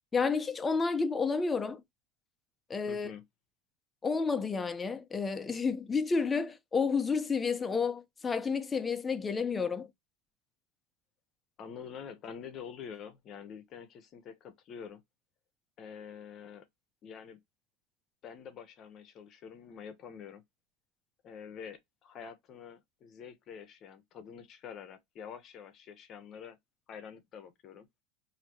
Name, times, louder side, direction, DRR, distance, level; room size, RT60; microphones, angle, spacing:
voice 1, 0.1-1.8 2.7-3.1 4.0-9.9, left 5 dB, 20° left, 0.7 m, -30 dB
voice 2, 2.9-3.2 11.6-15.0 15.8-16.7 17.0-17.4 18.2-20.4 21.2-26.6 26.9-27.9, left 7 dB, 40° left, 1.0 m, -47 dB
4.8 x 2.8 x 3.0 m
supercardioid pair, 105°, 0 cm